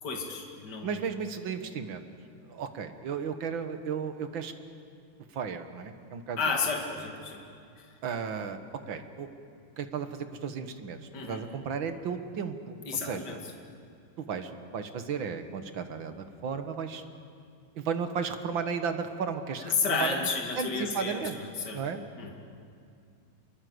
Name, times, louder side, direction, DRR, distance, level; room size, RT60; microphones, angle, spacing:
voice 1, 0.0-1.0 6.4-7.4 7.8-7.9 11.1-11.4 12.8-13.4 19.6-21.8 22.2-22.3, left 4 dB, 50° left, 1 dB, 3.0 m, -32 dB
voice 2, 0.8-2.1 2.5-4.5 5.3-6.4 8.0-8.6 8.9-9.3 9.8-11.0 11.3-13.5 14.2-17.0 17.8-20.3 20.6-21.4 21.7-22.0, right 6 dB, 65° right, 8 dB, 2.0 m, -34 dB
28.0 x 23.0 x 7.9 m, 2.4 s
omnidirectional pair, 2.4 m